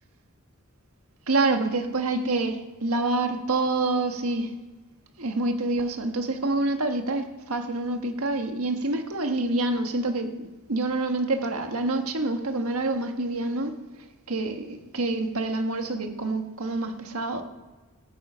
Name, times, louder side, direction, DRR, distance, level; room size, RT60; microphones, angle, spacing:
voice 1, 1.3-4.5 5.2-13.8 14.3-17.4, right 2 dB, 75° right, 1.5 m, -27 dB
15.5 x 9.4 x 5.6 m
head